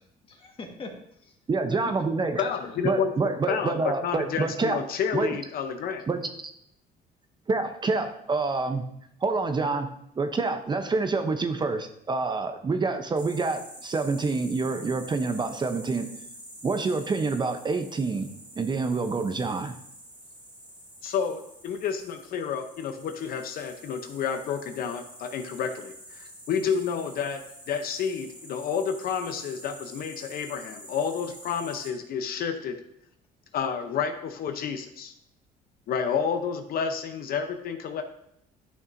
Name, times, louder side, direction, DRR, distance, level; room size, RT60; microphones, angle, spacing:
voice 1, 0.0-1.4 1.7-2.0 2.4-2.8 33.5-33.6, left 2 dB, 30° left, 2 dB, 1.5 m, -43 dB
voice 2, 1.5-2.4 2.8-4.8 5.1-5.3 6.1-6.2 7.5-8.9 9.2-9.9 10.2-16.1 16.6-18.3 18.6-19.7, right 3 dB, 25° right, 8 dB, 0.7 m, -27 dB
voice 3, 2.4-6.0 21.0-27.4 27.7-32.8 33.5-35.1 35.9-38.0, left 7 dB, 60° left, 7 dB, 0.7 m, -30 dB
sound 1, 13.2-31.9, equal, 10° right, 2.6 m, -47 dB
11.0 x 6.1 x 2.6 m, 0.74 s
cardioid pair, 110°, 17 cm